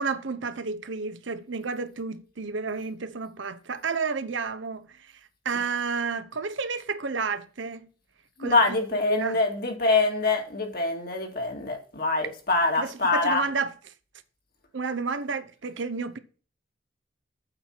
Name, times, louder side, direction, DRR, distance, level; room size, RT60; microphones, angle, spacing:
voice 1, 0.0-4.9 5.4-7.8 8.4-8.6 8.9-9.4 12.7-13.7 14.7-16.2, right 4 dB, 75° right, 0.8 m, -31 dB
voice 2, 8.4-13.4, left 3 dB, 50° left, 2.1 m, -25 dB
8.8 x 4.5 x 7.4 m
head